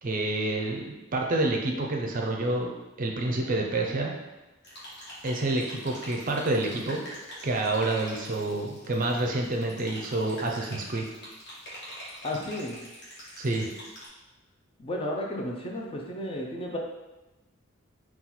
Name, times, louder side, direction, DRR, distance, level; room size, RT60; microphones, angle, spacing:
voice 1, 0.0-2.7 3.0-4.1 5.2-7.0 7.4-11.0 13.4-13.7, right 2 dB, 40° right, 1 dB, 0.5 m, -28 dB
sound 1, 4.6-14.0, equal, 55° left, 1.3 m, -44 dB
voice 2, 12.2-12.8 14.8-16.8, left 1 dB, 25° left, -1 dB, 0.5 m, -33 dB
4.3 x 2.3 x 4.0 m, 1.0 s
head